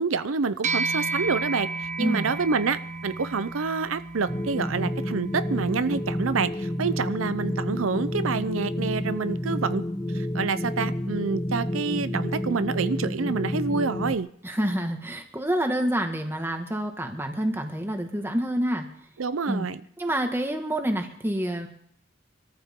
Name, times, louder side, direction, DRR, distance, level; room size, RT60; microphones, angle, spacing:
voice 1, 0.0-9.8 10.1-14.3 19.2-19.8, right 4 dB, 85° right, 13 dB, 0.6 m, -27 dB
sound 1, 0.6-10.2, right 3 dB, 35° right, 0.9 m, -35 dB
voice 2, 2.0-2.3 14.4-18.9 19.5-19.7 20.0-21.7, right 1 dB, 10° right, 4 dB, 1.8 m, -27 dB
sound 2, 4.3-14.2, left 1 dB, 15° left, 0.7 m, -30 dB
24.5 x 14.0 x 3.7 m, 0.64 s
head